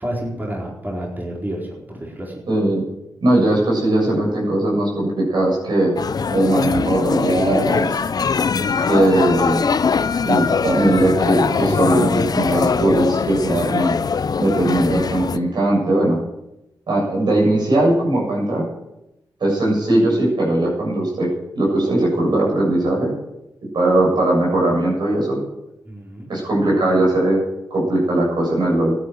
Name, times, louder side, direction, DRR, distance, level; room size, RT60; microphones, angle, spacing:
voice 1, 0.0-2.4 25.8-26.3, right 1 dB, 20° right, -3 dB, 4.6 m, -29 dB
voice 2, 2.5-2.8 3.2-5.9 6.3-8.0 8.9-9.7 10.2-14.0 14.4-16.2 16.9-18.6 19.4-21.3 21.6-23.1 23.7-25.4 26.3-27.4 27.7-29.0, right 1 dB, 70° right, -3 dB, 7.5 m, -19 dB
sound 1, 6.0-15.4, left 5 dB, 55° left, 0.6 m, -21 dB
13.0 x 10.0 x 7.8 m, 0.91 s
cardioid pair, 45°, 8 cm